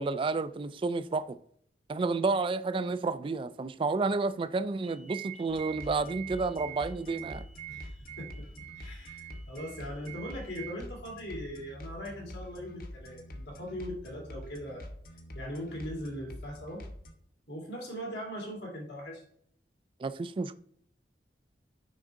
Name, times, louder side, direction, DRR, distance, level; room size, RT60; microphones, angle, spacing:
voice 1, 0.0-1.4 1.9-7.4 20.0-20.5, right 3 dB, 30° right, 0.3 m, -30 dB
sound 1, 4.8-10.7, right 13 dB, 45° right, 0.7 m, -46 dB
sound 2, 5.5-17.1, left 1 dB, 55° left, 0.9 m, -46 dB
voice 2, 7.7-14.9 15.3-16.9 17.5-19.2, equal, 75° left, 2.5 m, -40 dB
6.3 x 4.6 x 3.6 m
head